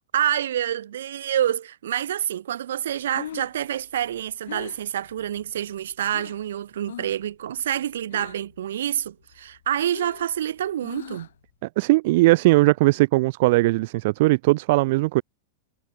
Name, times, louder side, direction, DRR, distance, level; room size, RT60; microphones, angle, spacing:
voice 1, 0.1-11.3, right 11 dB, 75° right, 6.7 m, -27 dB
Breathing, 2.9-6.5 6.8-7.3 7.6-8.6 8.9-11.5, left 11 dB, 75° left, 4.5 m, -41 dB
voice 2, 11.6-15.2, right 21 dB, 60° right, 1.1 m, -19 dB
hypercardioid pair, 115°, 0 cm